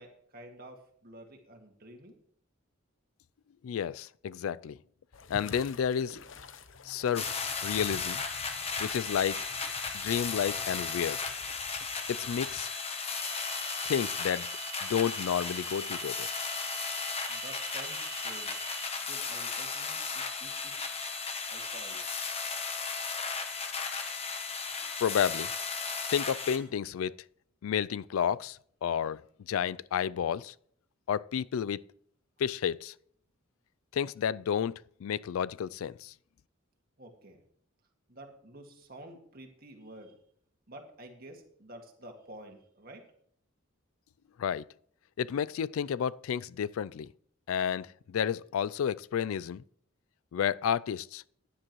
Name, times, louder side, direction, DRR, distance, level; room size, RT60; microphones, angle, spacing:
voice 1, 0.0-2.1 17.3-18.7 19.0-20.9 21.5-22.0 37.0-37.4 38.1-40.2 40.7-43.1, right 1 dB, 45° right, 2.0 m, -50 dB
voice 2, 3.6-4.8 5.3-6.2 6.8-7.3 7.6-8.2 8.8-9.5 9.9-11.2 12.1-12.7 13.8-14.5 14.8-16.3 25.0-25.5 26.1-27.1 27.6-29.2 29.5-30.5 31.1-31.8 32.4-32.9 33.9-34.7 35.0-36.1 44.4-44.7 45.2-47.1 47.5-49.6 50.3-51.2, left 8 dB, 90° left, 0.3 m, -31 dB
sound 1, 5.1-12.7, left 5 dB, 70° left, 0.8 m, -48 dB
sound 2, 7.2-26.6, left 5 dB, 30° left, 1.1 m, -35 dB
sound 3, 13.2-18.9, right 15 dB, 70° right, 1.2 m, -45 dB
15.5 x 10.0 x 3.1 m
head